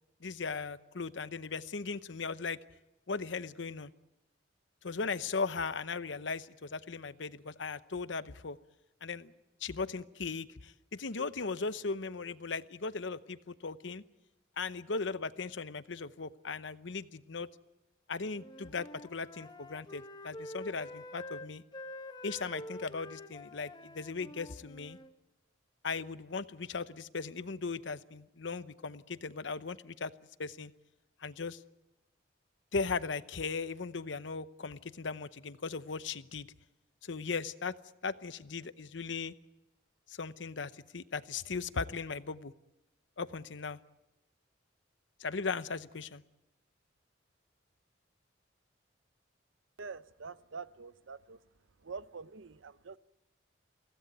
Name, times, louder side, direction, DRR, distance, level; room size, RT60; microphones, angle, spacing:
voice 1, 0.2-2.6 3.1-3.9 4.8-8.6 9.0-9.3 9.6-14.0 14.6-17.5 18.1-21.6 22.2-25.0 25.8-30.1 30.4-30.7 31.2-31.6 32.7-36.5 37.0-37.8 38.0-39.3 40.1-42.5 43.2-43.8 45.2-46.2, left 4 dB, 75° left, 0.8 m, -38 dB
Wind instrument woodwind instrument, 18.3-25.1, left 1 dB, 25° left, 1.0 m, -47 dB
voice 2, 49.8-51.4 51.8-53.0, right 5 dB, 90° right, 0.7 m, -45 dB
24.0 x 16.5 x 9.3 m
head